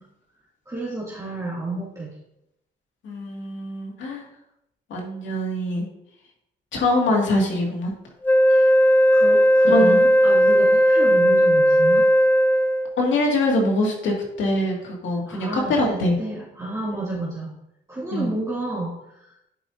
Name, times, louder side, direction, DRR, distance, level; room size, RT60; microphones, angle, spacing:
voice 1, 0.7-2.1 8.5-8.8 9.1-12.1 15.3-17.5 17.9-19.5, right 2 dB, 15° right, -8 dB, 2.4 m, -31 dB
voice 2, 3.0-4.2 4.9-5.9 6.7-7.9 9.7-10.0 13.0-16.2 18.1-18.3, left 1 dB, 75° left, -1 dB, 2.2 m, -23 dB
Wind instrument woodwind instrument, 8.2-13.0, equal, 10° left, 0.4 m, -16 dB
10.5 x 5.5 x 2.7 m, 0.80 s
cardioid pair, 90°, 20 cm